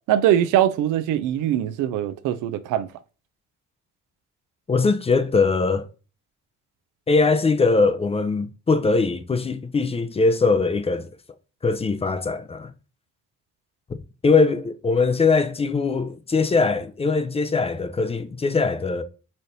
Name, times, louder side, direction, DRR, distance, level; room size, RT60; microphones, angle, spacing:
voice 1, 0.1-2.9, right 11 dB, 85° right, 0.5 m, -22 dB
voice 2, 4.7-5.9 7.1-11.1 11.6-12.7 14.2-19.0, left 4 dB, 20° left, 0.4 m, -21 dB
4.2 x 3.2 x 2.6 m
cardioid pair, 90°, 30 cm